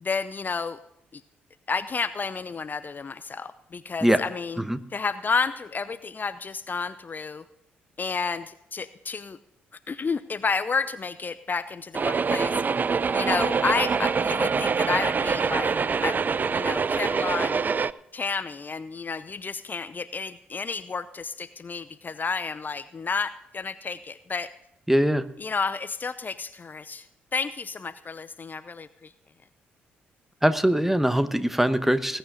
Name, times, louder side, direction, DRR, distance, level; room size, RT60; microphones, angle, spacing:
voice 1, 0.0-0.8 1.1-1.2 1.7-4.6 4.9-7.4 8.0-9.4 9.9-12.5 13.1-15.8 16.0-16.2 16.5-17.6 18.1-24.5 25.4-27.1 27.3-29.1, left 4 dB, 35° left, 14 dB, 0.6 m, -31 dB
sound 1, 11.9-17.9, right 5 dB, 35° right, 0.5 m, -25 dB
voice 2, 24.9-25.3 30.4-32.2, right 1 dB, 5° right, 12 dB, 1.1 m, -22 dB
20.0 x 9.1 x 3.8 m, 0.80 s
hypercardioid pair, 45°, 5 cm